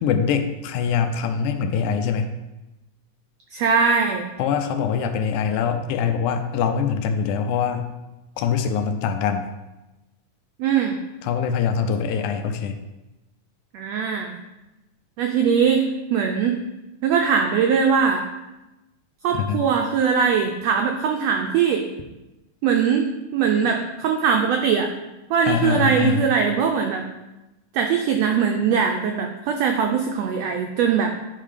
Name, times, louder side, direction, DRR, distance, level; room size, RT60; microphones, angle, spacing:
voice 1, 0.0-2.4 4.4-7.9 8.4-9.5 11.2-12.8 19.3-19.6 25.5-26.3, left 6 dB, 80° left, 7 dB, 2.0 m, -23 dB
voice 2, 3.5-4.3 10.6-10.9 13.7-14.4 15.2-16.6 17.0-18.3 19.2-21.9 22.6-23.1 23.3-24.9 25.3-27.0 27.7-31.1, right 6 dB, 85° right, 3 dB, 1.4 m, -21 dB
9.8 x 3.8 x 5.0 m, 1.0 s
omnidirectional pair, 3.6 m